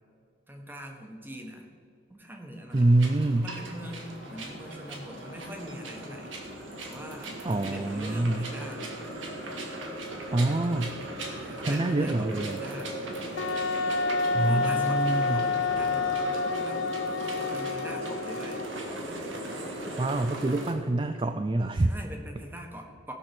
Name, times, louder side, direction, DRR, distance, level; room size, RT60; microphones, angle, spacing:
voice 1, 0.5-1.7 2.1-2.9 3.4-6.3 6.8-8.9 11.3-13.0 14.4-16.8 17.4-18.6 21.9-23.1, equal, 10° right, 2 dB, 1.3 m, -42 dB
sound 1, 2.6-20.4, left 1 dB, 40° left, 0.8 m, -44 dB
voice 2, 2.7-3.5 7.4-8.5 10.3-11.0 11.6-12.6 14.3-15.4 19.9-21.9, right 2 dB, 25° right, 8 dB, 0.4 m, -26 dB
sound 2, 2.7-20.7, right 1 dB, 85° right, 1.8 m, -39 dB
Wind instrument woodwind instrument, 13.4-18.8, left 3 dB, 70° left, 0.4 m, -29 dB
17.0 x 6.1 x 6.0 m, 2.4 s
head